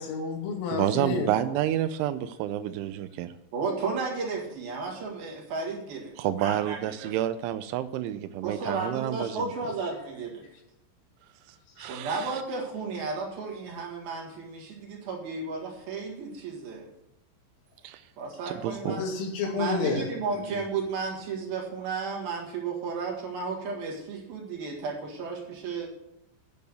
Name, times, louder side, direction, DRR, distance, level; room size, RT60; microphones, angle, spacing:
voice 1, 0.0-1.5 11.8-11.9 18.8-20.1 20.5-20.6, left 4 dB, 90° left, 0 dB, 4.9 m, -30 dB
voice 2, 0.7-3.3 6.2-9.5 11.8-12.4 17.8-18.0 18.5-19.0, right 12 dB, 85° right, 12 dB, 2.9 m, -29 dB
voice 3, 3.5-7.1 8.4-10.5 11.9-16.9 18.2-19.0 19.5-25.9, right 4 dB, 60° right, 0 dB, 3.2 m, -33 dB
10.5 x 7.0 x 8.0 m, 0.82 s
omnidirectional pair, 5.7 m